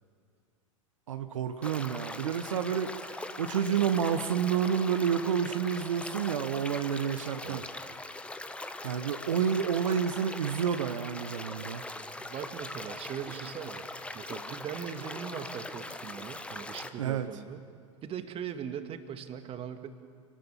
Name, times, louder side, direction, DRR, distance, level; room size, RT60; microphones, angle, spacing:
voice 1, 1.1-7.6 8.8-11.8 17.0-17.3, right 8 dB, 75° right, 8 dB, 1.0 m, -29 dB
sound 1, 1.6-16.9, left 2 dB, 5° left, 1.2 m, -41 dB
voice 2, 12.2-13.9 14.1-17.6 18.0-19.9, right 8 dB, 35° right, 8 dB, 1.9 m, -40 dB
29.0 x 18.5 x 7.3 m, 2.2 s
figure-of-eight pair, 85°, 17 cm